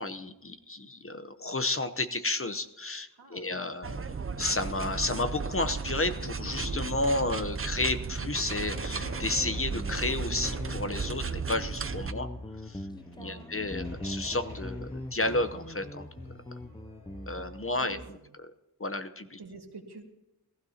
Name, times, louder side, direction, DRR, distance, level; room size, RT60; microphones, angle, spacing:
voice 1, 0.0-4.0 4.4-12.3 12.6-12.8 13.2-16.1 17.3-18.0 18.8-19.4, left 2 dB, 35° left, 9 dB, 0.8 m, -32 dB
voice 2, 3.1-3.7 13.2-13.5 17.8-18.3 19.4-20.0, right 4 dB, 80° right, 3 dB, 1.9 m, -47 dB
sound 1, 3.8-12.1, right 5 dB, 35° right, 0.6 m, -35 dB
sound 2, 6.1-18.0, left 1 dB, 65° left, 6.4 m, -45 dB
Guitar, 9.1-17.6, left 1 dB, 10° left, 0.5 m, -42 dB
18.5 x 15.0 x 2.9 m, 0.95 s
wide cardioid pair, 75°, 39 cm